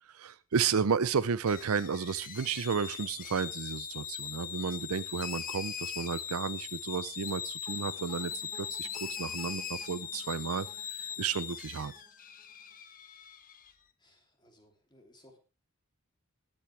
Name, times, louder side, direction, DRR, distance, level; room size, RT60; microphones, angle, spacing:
voice 1, 0.0-11.9, right 6 dB, 80° right, 0.6 m, -32 dB
sound 1, 1.5-13.7, left 8 dB, 40° left, 1.3 m, -40 dB
sound 2, 7.7-12.8, left 1 dB, 5° right, 4.3 m, -57 dB
voice 2, 14.0-15.4, left 1 dB, 20° left, 3.0 m, -61 dB
21.0 x 8.8 x 3.3 m
head